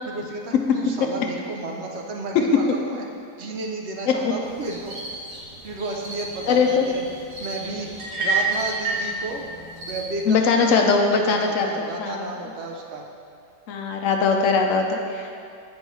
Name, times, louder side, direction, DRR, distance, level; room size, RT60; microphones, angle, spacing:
voice 1, 0.1-3.0 3.4-4.9 5.6-7.0 7.4-7.9 8.2-9.4 9.9-13.1, right 2 dB, 75° right, 0 dB, 0.6 m, -32 dB
sound 1, 4.4-10.3, right 1 dB, 55° right, 1.4 m, -39 dB
voice 2, 6.5-6.9 10.3-12.3 13.7-15.4, left 4 dB, 70° left, 3 dB, 0.7 m, -21 dB
sound 2, 8.0-9.1, right 3 dB, 35° right, 0.7 m, -24 dB
7.9 x 5.3 x 3.1 m, 2.5 s
omnidirectional pair, 1.8 m